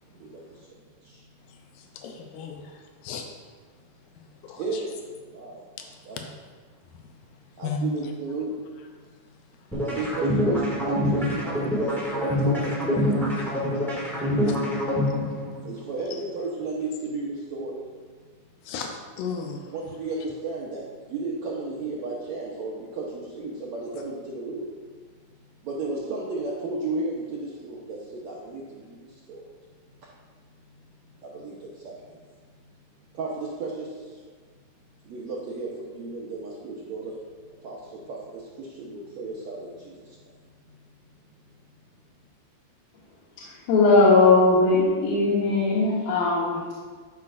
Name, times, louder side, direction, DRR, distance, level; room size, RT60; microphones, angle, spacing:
voice 1, 0.2-0.7 1.0-1.2 4.5-5.6 6.0-6.2 7.6-8.6 9.8-13.9 15.6-17.8 19.7-24.7 25.6-29.4 30.0-30.1 31.2-32.2 33.1-34.2 35.0-37.2 37.6-40.2, right 3 dB, 70° right, -4 dB, 1.7 m, -34 dB
voice 2, 1.8-3.2 4.4-4.8 5.8-5.9 6.2-6.3 7.6-7.8 11.9-12.0 12.3-12.8 14.2-14.6 16.1-16.2 18.6-18.9 19.2-19.7, left 6 dB, 90° left, 3 dB, 1.7 m, -36 dB
sound 1, 9.7-15.7, left 1 dB, 5° left, 0.3 m, -25 dB
voice 3, 43.4-46.6, left 3 dB, 70° left, -9 dB, 2.7 m, -19 dB
12.0 x 5.7 x 2.5 m, 1.5 s
omnidirectional pair, 4.3 m